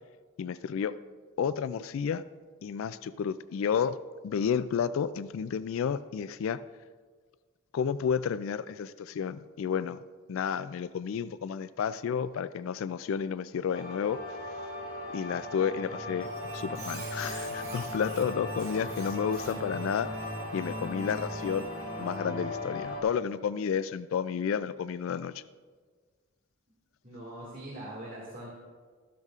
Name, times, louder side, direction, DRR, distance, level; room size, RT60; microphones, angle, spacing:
voice 1, 0.4-1.0 1.4-2.2 2.6-4.0 4.2-6.6 7.7-10.0 10.3-14.2 15.1-20.1 20.5-21.7 22.0-25.3, left 7 dB, 70° left, 15 dB, 0.3 m, -31 dB
sound 1, 13.7-23.0, left 1 dB, 40° left, 3.0 m, -37 dB
Squeak, 16.2-22.2, right 6 dB, 80° right, 2.3 m, -48 dB
voice 2, 27.0-28.6, right 1 dB, 40° right, -4 dB, 2.0 m, -42 dB
13.0 x 12.0 x 2.4 m, 1.5 s
head